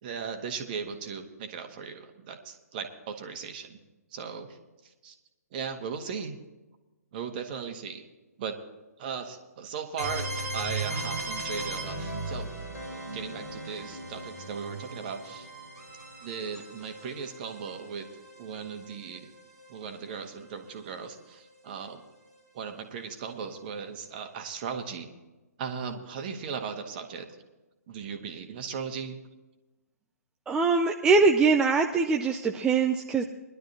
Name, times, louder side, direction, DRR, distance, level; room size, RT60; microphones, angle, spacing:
voice 1, 0.0-3.8 4.1-4.6 4.8-5.1 5.5-6.4 7.1-8.0 8.4-8.6 9.0-12.5 12.9-15.5 16.2-18.1 18.4-19.3 19.7-22.0 22.5-25.1 25.6-27.3 27.9-29.2, right 6 dB, 35° right, 6 dB, 1.6 m, -37 dB
sound 1, 10.0-19.7, right 2 dB, 80° left, 4.2 m, -37 dB
voice 2, 30.5-33.2, right 4 dB, 10° right, 3 dB, 0.4 m, -23 dB
21.0 x 12.0 x 2.9 m, 1.1 s
figure-of-eight pair, 125°, 9 cm